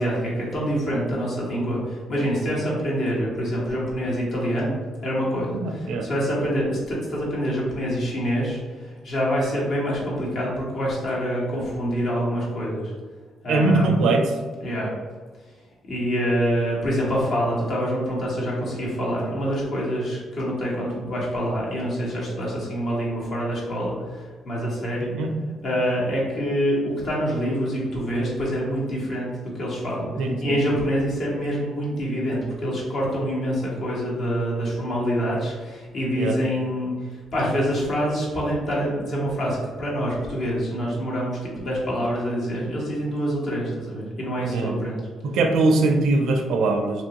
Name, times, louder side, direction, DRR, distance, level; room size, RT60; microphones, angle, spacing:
voice 1, 0.0-12.9 13.4-13.9 14.6-14.9 15.9-25.1 25.6-29.3 29.5-30.1 30.4-36.9 37.3-45.0, equal, 60° left, -5 dB, 1.2 m, -26 dB
voice 2, 5.5-6.1 13.5-14.3 25.1-25.3 30.2-30.6 36.1-36.4 44.4-44.8 45.2-47.0, right 3 dB, 85° right, 4 dB, 0.4 m, -21 dB
2.9 x 2.6 x 2.9 m, 1.4 s
cardioid pair, 90°, 0 cm